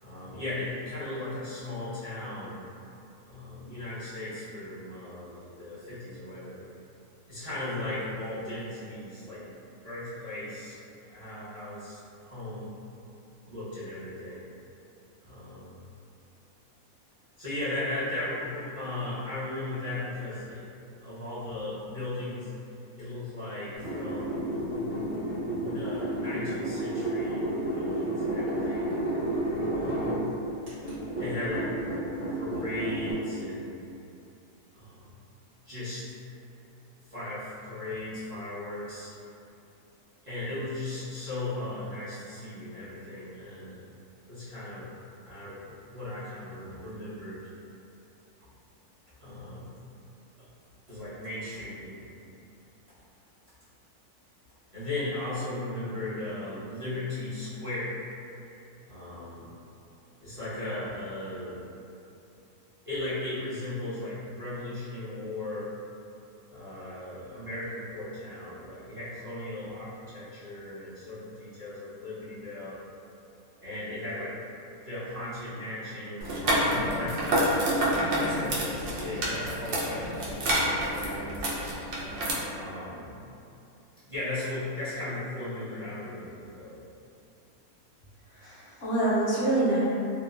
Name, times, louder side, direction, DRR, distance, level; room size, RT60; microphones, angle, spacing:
voice 1, 0.0-2.6 3.3-6.7 7.3-9.5 9.8-10.8 11.1-12.7 13.5-14.4 15.2-15.8 17.4-20.7 21.0-22.5 22.9-24.6 25.5-28.9 29.7-30.3 31.1-31.7 32.3-33.7 34.7-35.2 35.6-36.1 37.1-39.1 40.2-43.9 44.3-44.9 45.2-47.5 49.2-49.7 50.4-50.5 50.9-52.1 54.7-58.0 58.8-59.5 60.2-61.7 62.8-65.7 66.5-72.8 73.6-74.4 74.8-80.5 80.9-81.7 82.5-83.2 84.1-86.9, left 2 dB, 35° right, -15 dB, 0.6 m, -37 dB
sound 1, 23.8-30.2 30.7-33.1, right 1 dB, 55° right, 1.3 m, -31 dB
sound 2, 76.2-82.3, right 1 dB, 90° right, 0.5 m, -28 dB
voice 2, 88.3-89.8, right 2 dB, 65° left, -11 dB, 0.7 m, -26 dB
2.8 x 2.1 x 2.4 m, 2.7 s
omnidirectional pair, 1.6 m